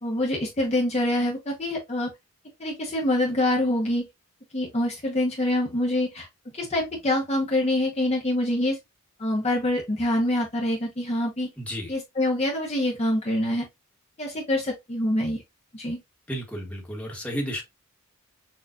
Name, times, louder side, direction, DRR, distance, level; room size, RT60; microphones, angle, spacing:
voice 1, 0.0-2.1 2.6-4.0 4.5-6.3 6.5-8.8 9.2-11.5 11.9-13.6 14.2-15.4 15.7-16.0, left 1 dB, 30° left, 0.9 m, -25 dB
voice 2, 11.6-11.9 16.3-17.6, equal, 5° left, 1.3 m, -32 dB
6.3 x 2.4 x 2.4 m
head